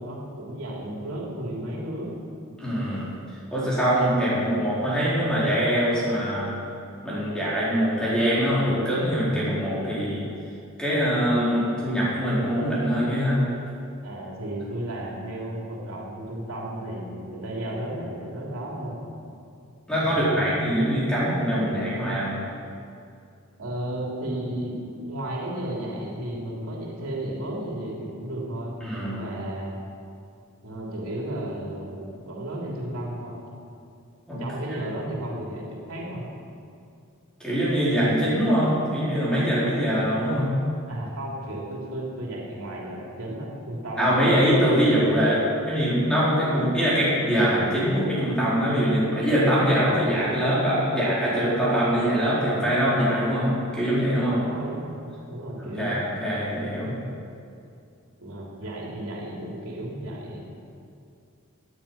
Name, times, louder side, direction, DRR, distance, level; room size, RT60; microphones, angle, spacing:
voice 1, 0.0-2.1 14.0-19.0 20.0-20.6 23.6-29.8 30.6-33.4 34.4-36.3 40.9-44.2 54.4-55.0 55.3-56.0 58.2-60.4, right 1 dB, 80° right, -3 dB, 3.0 m, -33 dB
voice 2, 2.6-3.1 3.5-6.5 7.0-10.2 10.8-13.5 19.9-22.4 28.8-29.2 34.3-34.4 37.4-40.6 44.0-54.4 55.6-57.0, equal, 5° left, -9 dB, 4.4 m, -23 dB
17.5 x 10.0 x 5.8 m, 2.5 s
head